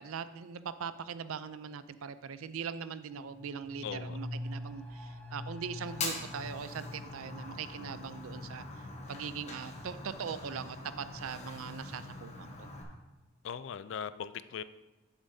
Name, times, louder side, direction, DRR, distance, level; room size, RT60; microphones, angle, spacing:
voice 1, 0.0-8.6 9.1-12.7, right 6 dB, 80° right, 13 dB, 0.4 m, -41 dB
sound 1, 3.1-12.5 12.8-12.9, left 1 dB, 5° left, 0.5 m, -46 dB
voice 2, 3.8-4.2 13.4-14.6, left 7 dB, 60° left, 14 dB, 0.3 m, -39 dB
Fire, 5.8-12.8, left 3 dB, 30° left, 1.0 m, -43 dB
10.5 x 7.2 x 2.7 m, 1.1 s
head